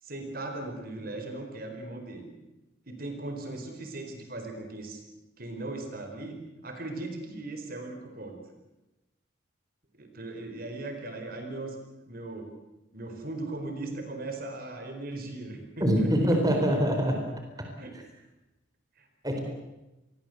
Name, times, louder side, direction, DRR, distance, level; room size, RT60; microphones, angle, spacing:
voice 1, 0.0-2.3 2.9-5.0 5.4-6.4 6.6-8.4 10.0-11.8 12.1-12.5 12.9-16.4 17.8-18.0 19.0-19.1, right 2 dB, 50° right, 5 dB, 4.8 m, -38 dB
voice 2, 15.8-17.3 17.6-17.7 19.2-19.4, equal, 20° right, 3 dB, 4.3 m, -24 dB
29.0 x 22.5 x 8.0 m, 1.0 s
head